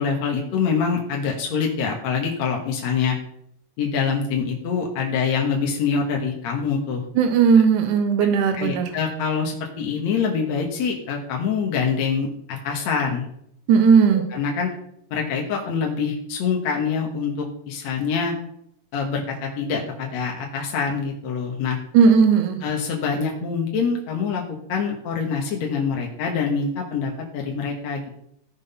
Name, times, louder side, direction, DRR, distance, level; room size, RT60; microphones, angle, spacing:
voice 1, 0.0-3.2 3.8-7.0 8.6-13.2 14.3-14.7 15.1-18.4 18.9-21.8 22.6-28.2, left 6 dB, 65° left, 0 dB, 2.6 m, -25 dB
voice 2, 7.2-8.8 13.7-14.2 21.9-22.6, right 6 dB, 85° right, 6 dB, 2.5 m, -16 dB
15.5 x 6.2 x 5.5 m, 0.73 s
omnidirectional pair, 3.5 m